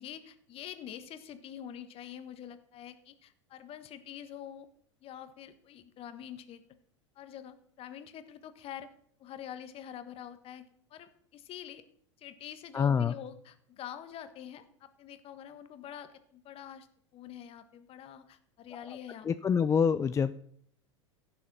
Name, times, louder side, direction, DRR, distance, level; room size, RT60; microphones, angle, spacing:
voice 1, 0.0-4.7 5.0-6.6 7.1-8.9 9.2-10.6 10.9-11.8 12.2-16.9 17.1-19.3, left 10 dB, 40° left, 11 dB, 1.4 m, -46 dB
voice 2, 12.7-13.1 19.2-20.3, left 6 dB, 20° left, 13 dB, 0.4 m, -26 dB
16.0 x 7.1 x 5.6 m, 0.66 s
hypercardioid pair, 90°, 15 cm